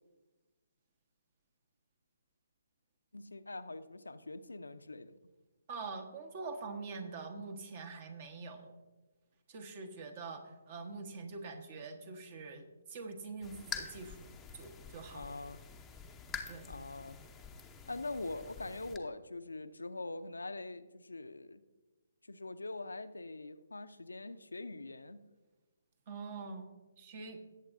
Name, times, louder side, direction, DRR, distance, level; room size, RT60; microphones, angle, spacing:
voice 1, 3.1-5.2 15.1-15.6 16.7-17.2 17.8-21.6 22.3-25.2, left 2 dB, 75° left, 10 dB, 0.6 m, -43 dB
voice 2, 5.7-8.7 9.5-14.2 14.5-15.3 16.5-16.7 26.1-26.7 27.0-27.4, right 4 dB, 35° right, 6 dB, 1.3 m, -45 dB
sound 1, 13.4-19.0, left 5 dB, 10° left, 0.7 m, -47 dB
18.5 x 8.0 x 2.6 m, 1.2 s
figure-of-eight pair, 135°, 0 cm